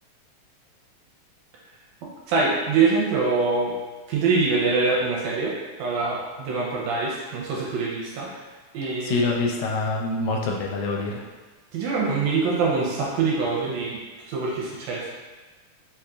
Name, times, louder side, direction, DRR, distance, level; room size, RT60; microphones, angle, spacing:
voice 1, 2.3-3.7 4.1-5.5 5.8-8.4 8.7-9.3 11.7-14.0 14.3-15.1, right 4 dB, 80° right, -4 dB, 1.7 m, -24 dB
voice 2, 9.0-11.2, left 3 dB, 80° left, -1 dB, 1.9 m, -25 dB
4.8 x 2.8 x 2.3 m, 1.3 s
omnidirectional pair, 3.4 m